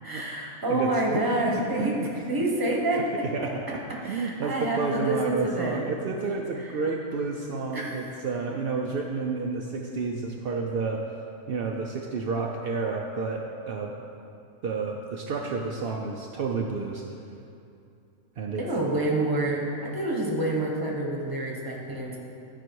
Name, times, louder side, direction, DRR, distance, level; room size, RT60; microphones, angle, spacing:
voice 1, 0.0-3.3 4.0-5.9 6.2-6.3 6.6-6.8 7.7-8.1 18.5-22.2, right 1 dB, 15° right, -2 dB, 0.9 m, -28 dB
voice 2, 3.2-11.1 11.5-13.9 14.6-17.0 18.4-18.6, right 4 dB, 75° right, 0 dB, 0.5 m, -30 dB
11.5 x 4.8 x 4.6 m, 2.6 s
omnidirectional pair, 1.6 m